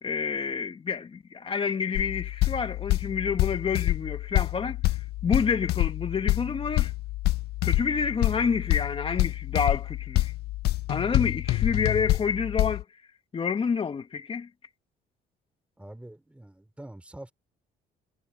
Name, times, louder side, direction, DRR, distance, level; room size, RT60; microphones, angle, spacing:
voice 1, 0.0-6.9 7.6-10.3 10.9-12.8 13.3-14.5, left 6 dB, 30° left, 1.8 m, -28 dB
sound 1, 1.9-12.8, left 17 dB, 70° left, 0.4 m, -27 dB
voice 2, 15.8-17.3, right 1 dB, 5° right, 5.1 m, -45 dB
cardioid pair, 110°, 17 cm